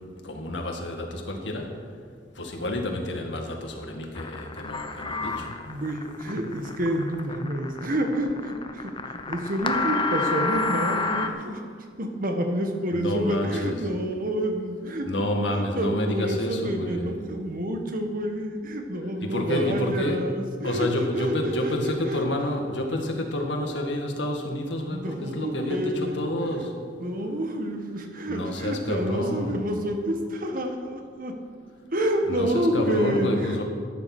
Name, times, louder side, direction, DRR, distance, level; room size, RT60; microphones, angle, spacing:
voice 1, 0.2-1.7 2.4-5.5 12.9-13.8 15.1-17.2 19.2-20.3 20.6-26.8 28.3-29.6 32.3-33.6, left 1 dB, 80° left, 2 dB, 2.0 m, -29 dB
sound 1, 4.1-11.3, left 3 dB, 30° left, 0.8 m, -29 dB
voice 2, 5.3-22.3 24.9-26.2 27.0-31.4 31.9-33.6, right 1 dB, 50° right, 4 dB, 1.5 m, -29 dB
14.0 x 9.9 x 6.1 m, 2.1 s
head